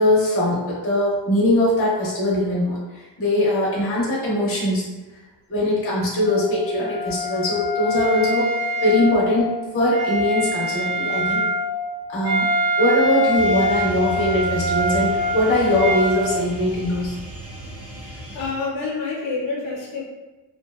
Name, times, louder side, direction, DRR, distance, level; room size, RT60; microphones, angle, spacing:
voice 1, 0.0-4.9 5.5-11.5 12.1-12.5 12.8-17.1, left 1 dB, 30° left, -6 dB, 0.7 m, -21 dB
Wind instrument woodwind instrument, 6.2-16.2, equal, 35° right, 1.0 m, -24 dB
sound 1, 13.3-18.5, left 2 dB, 5° right, 0.3 m, -35 dB
voice 2, 18.0-20.0, left 4 dB, 75° left, -3 dB, 0.7 m, -28 dB
2.5 x 2.2 x 2.3 m, 1.1 s
cardioid pair, 160°, 45 cm